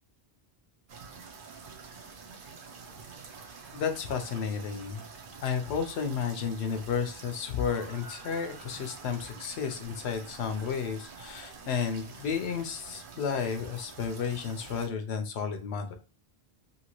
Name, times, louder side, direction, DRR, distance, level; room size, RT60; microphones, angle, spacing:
sound 1, 0.9-14.9, right 5 dB, 60° right, 0.8 m, -47 dB
voice 1, 3.7-5.0 5.4-16.0, left 6 dB, 90° left, 7 dB, 0.9 m, -32 dB
2.8 x 2.8 x 2.9 m, 0.35 s
omnidirectional pair, 1.1 m